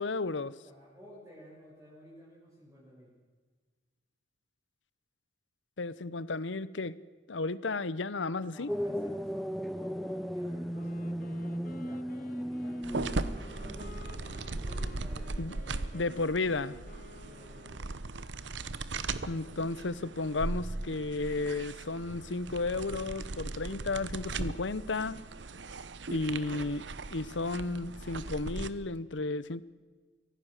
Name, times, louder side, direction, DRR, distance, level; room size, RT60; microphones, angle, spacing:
voice 1, 0.0-0.5 5.8-7.0 7.3-8.7 15.4-15.5 15.9-16.8 19.3-25.2 26.1-29.6, left 3 dB, 85° left, 0.8 m, -33 dB
voice 2, 0.6-3.1 8.5-12.1 12.4-16.1 17.2-17.9, equal, 15° right, 6.5 m, -53 dB
sound 1, 8.7-15.2, equal, ahead, 0.5 m, -37 dB
Wind instrument woodwind instrument, 10.7-18.5, left 3 dB, 50° left, 0.9 m, -53 dB
sound 2, 12.8-28.7, right 3 dB, 75° right, 1.0 m, -38 dB
24.0 x 17.0 x 6.6 m
head